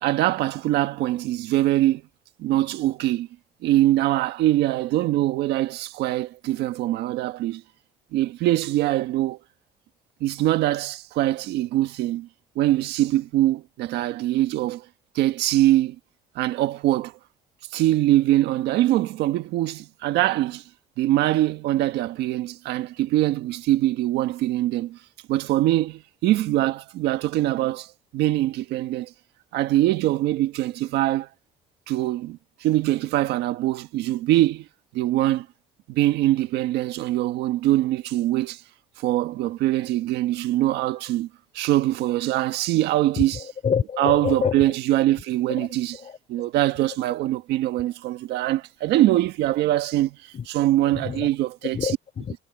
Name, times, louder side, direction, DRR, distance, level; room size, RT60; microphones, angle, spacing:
voice 1, 0.0-2.0 2.4-3.3 3.6-7.6 8.1-9.4 10.2-12.3 12.5-14.8 15.1-15.9 16.3-17.2 17.7-20.6 21.0-25.0 25.3-29.1 29.5-31.3 31.9-34.7 34.9-35.5 35.9-38.6 39.0-41.3 41.5-43.4 44.0-46.0 46.3-51.9, right 15 dB, 85° right, 1.5 m, -23 dB
voice 2, 43.2-44.7 45.6-45.7 46.0-46.2 50.3-50.5 50.8-51.3 51.7-52.4, left 7 dB, 40° left, 3.8 m, -28 dB
cardioid pair, 110°, 17 cm